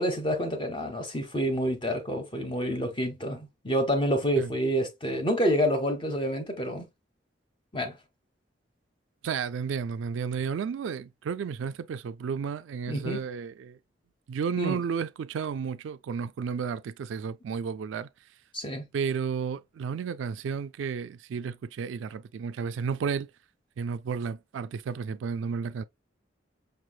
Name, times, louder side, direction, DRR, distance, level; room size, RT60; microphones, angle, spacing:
voice 1, 0.0-6.8 7.7-8.0 12.9-13.2 14.6-14.8 18.5-18.9, equal, 25° left, 0.9 m, -28 dB
voice 2, 9.2-13.8 14.3-18.1 18.9-23.3 23.8-25.8, right 6 dB, 80° right, 0.3 m, -32 dB
5.2 x 3.1 x 2.2 m
head